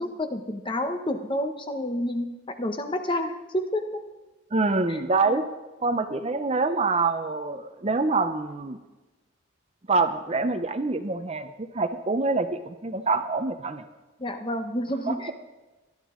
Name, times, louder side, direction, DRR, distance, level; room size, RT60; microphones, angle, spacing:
voice 1, 0.0-2.3 2.6-4.0 4.9-5.4 14.2-15.3, left 1 dB, 25° left, 7 dB, 0.9 m, -29 dB
voice 2, 4.5-5.4 5.8-8.8 9.9-13.8 15.1-15.3, right 3 dB, 30° right, 9 dB, 0.6 m, -26 dB
18.5 x 12.0 x 3.8 m, 1.1 s
head